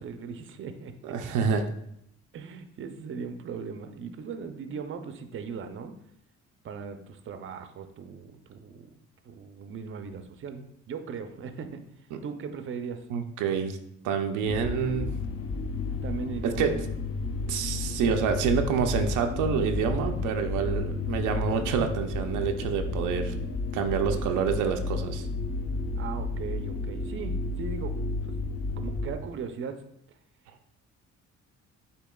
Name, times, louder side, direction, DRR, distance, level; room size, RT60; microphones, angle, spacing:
voice 1, 0.0-1.0 2.3-6.0 6.6-8.9 9.2-11.8 12.2-13.1 16.0-16.7 26.0-28.4 28.8-29.9, right 6 dB, 40° right, 8 dB, 0.5 m, -38 dB
voice 2, 1.0-1.7 12.1-12.2 13.1-13.8 14.0-15.1 16.4-16.7 17.5-23.3 23.7-25.2, right 6 dB, 90° right, 5 dB, 0.5 m, -27 dB
sound 1, 14.5-29.2, left 3 dB, 50° left, 0.6 m, -32 dB
8.2 x 2.9 x 2.3 m, 0.74 s
cardioid pair, 90°, 30 cm